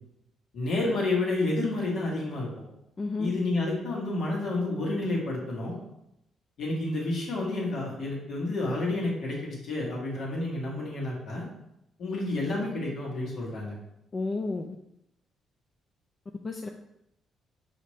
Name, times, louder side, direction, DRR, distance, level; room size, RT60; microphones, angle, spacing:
voice 1, 0.5-2.5 3.2-5.8 6.6-11.4 12.0-13.7, left 2 dB, 65° left, -4 dB, 1.5 m, -30 dB
voice 2, 3.0-3.3 14.1-14.7 16.4-16.7, left 3 dB, 35° left, 3 dB, 0.3 m, -31 dB
5.1 x 2.8 x 3.1 m, 0.83 s
cardioid pair, 90°, 0 cm